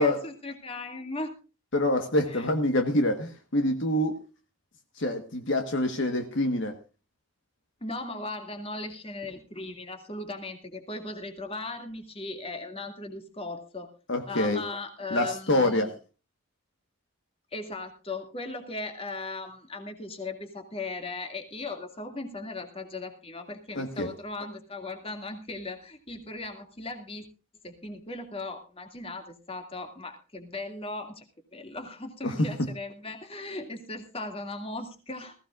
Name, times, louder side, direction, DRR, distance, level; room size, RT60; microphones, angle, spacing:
voice 1, 0.0-1.4 2.3-2.5 7.8-13.9 14.3-15.9 17.5-27.3 27.6-31.2 31.5-35.3, left 2 dB, 25° left, 5 dB, 2.3 m, -38 dB
voice 2, 1.7-4.2 5.0-6.7 14.1-14.6 15.1-15.9 23.7-24.1 32.2-32.5, left 1 dB, 55° left, 6 dB, 1.4 m, -26 dB
19.5 x 15.5 x 2.5 m, 0.32 s
head